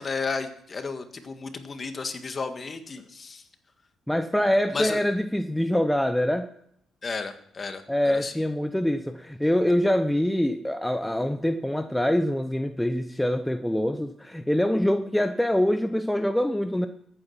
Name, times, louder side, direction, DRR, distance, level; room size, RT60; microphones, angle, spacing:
voice 1, 0.0-3.4 4.7-5.0 7.0-8.3, left 4 dB, 35° left, 8 dB, 1.7 m, -33 dB
voice 2, 4.1-6.5 7.9-16.9, left 1 dB, 5° left, 8 dB, 0.7 m, -24 dB
14.0 x 9.0 x 5.8 m, 0.70 s
cardioid pair, 90°, 0 cm